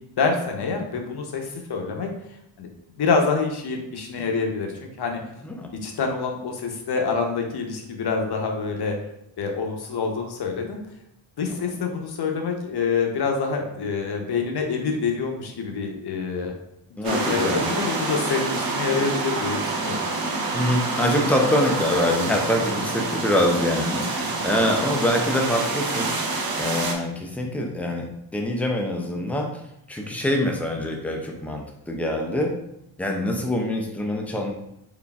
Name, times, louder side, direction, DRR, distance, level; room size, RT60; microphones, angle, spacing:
voice 1, 0.2-2.1 2.6-2.7 2.9-5.2 5.8-9.0 9.4-10.8 11.4-16.5 16.9-20.0, left 4 dB, 55° left, 2 dB, 0.7 m, -26 dB
voice 2, 17.0-17.6 20.5-26.3 26.6-29.6 29.9-32.5 33.0-34.5, left 1 dB, 5° left, 2 dB, 0.3 m, -25 dB
sound 1, 17.0-26.9, right 3 dB, 50° right, 0.6 m, -27 dB
3.9 x 3.4 x 2.3 m, 0.80 s
wide cardioid pair, 155°, 46 cm